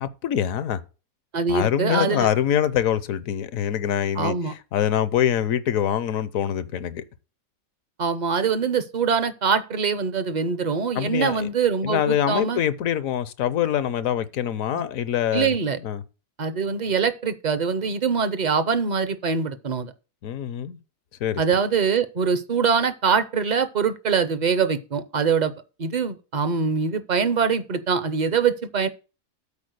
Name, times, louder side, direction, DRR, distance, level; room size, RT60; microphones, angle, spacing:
voice 1, 0.0-0.8 1.5-7.0 11.0-11.5 11.8-15.5 15.8-16.0 20.2-20.8 21.2-21.4, left 10 dB, 75° left, 1.1 m, -24 dB
voice 2, 1.3-2.3 4.2-4.5 8.0-12.6 14.7-14.8 15.3-15.8 16.4-19.9 21.4-25.5 25.8-28.9, right 6 dB, 45° right, 0.6 m, -23 dB
8.5 x 4.4 x 6.5 m
omnidirectional pair, 1.4 m